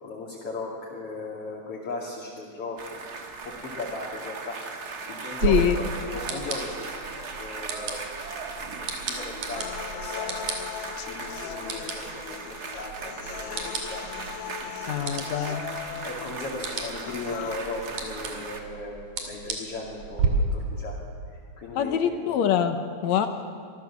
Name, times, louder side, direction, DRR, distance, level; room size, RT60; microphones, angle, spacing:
voice 1, 0.0-3.1 3.4-7.1 7.4-8.7 9.0-10.4 11.0-15.3 16.0-19.0 19.3-21.0 21.3-22.2, left 3 dB, 50° left, -4 dB, 3.3 m, -37 dB
sound 1, 2.8-18.6, right 4 dB, 45° right, 1.4 m, -38 dB
voice 2, 5.4-5.8 14.9-15.6 21.8-23.3, left 9 dB, 70° left, 8 dB, 2.1 m, -24 dB
sound 2, 5.4-20.3, right 5 dB, 75° right, 3.8 m, -35 dB
sound 3, 9.6-17.6, left 12 dB, 85° left, 2.2 m, -39 dB
24.5 x 14.5 x 7.2 m, 2.2 s
omnidirectional pair, 3.7 m